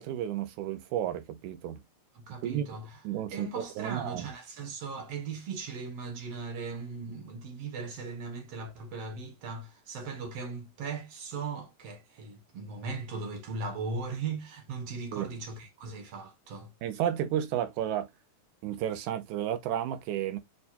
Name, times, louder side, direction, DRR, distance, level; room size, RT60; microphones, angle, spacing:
voice 1, 0.0-1.8 2.4-2.7 3.0-4.3 15.1-15.3 16.8-18.1 18.6-20.4, right 11 dB, 80° right, 2.1 m, -32 dB
voice 2, 2.1-2.9 3.3-16.7, right 4 dB, 65° right, 1.8 m, -38 dB
6.4 x 2.3 x 2.7 m
omnidirectional pair, 3.5 m